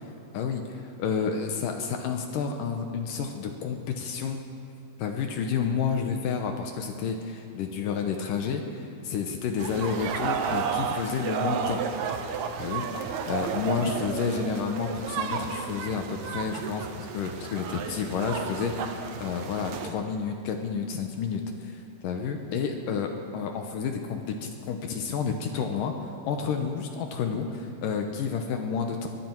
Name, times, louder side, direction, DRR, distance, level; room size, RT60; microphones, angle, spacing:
voice 1, 0.3-4.4 5.0-11.8 12.6-25.9 26.2-29.1, left 6 dB, 70° left, 4 dB, 2.3 m, -30 dB
sound 1, 9.6-19.9, right 6 dB, 75° right, 1.8 m, -32 dB
23.5 x 13.5 x 4.6 m, 2.7 s
omnidirectional pair, 4.5 m